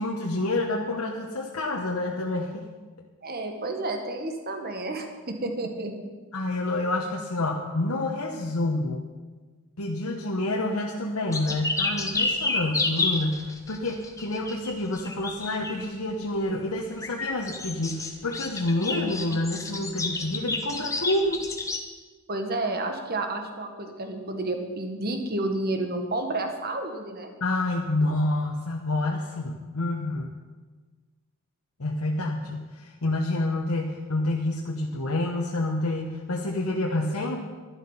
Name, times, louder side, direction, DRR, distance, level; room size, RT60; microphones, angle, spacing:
voice 1, 0.0-2.6 6.3-9.0 9.8-21.5 27.4-30.4 31.8-37.4, left 2 dB, 80° left, 0 dB, 1.2 m, -28 dB
voice 2, 3.2-6.0 22.3-27.3, right 2 dB, 45° right, 5 dB, 1.6 m, -30 dB
sound 1, 11.3-15.9 16.9-21.8, left 3 dB, 15° left, 1.1 m, -30 dB
12.0 x 11.5 x 5.6 m, 1.4 s
head